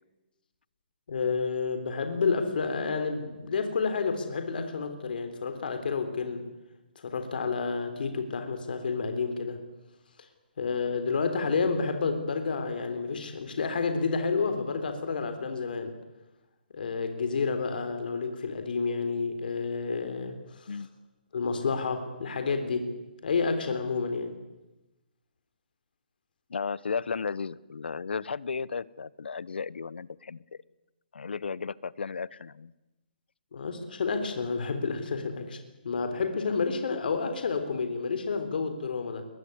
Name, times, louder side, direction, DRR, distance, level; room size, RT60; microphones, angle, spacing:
voice 1, 1.1-6.4 7.0-9.6 10.6-16.0 16.7-20.7 21.3-22.9 23.2-24.4 33.5-35.6 35.8-39.3, left 4 dB, 60° left, 7 dB, 3.6 m, -30 dB
voice 2, 26.5-30.4 31.1-32.7, left 5 dB, 85° left, 22 dB, 0.9 m, -34 dB
22.0 x 21.0 x 9.7 m, 1.0 s
hypercardioid pair, 165°, 6 cm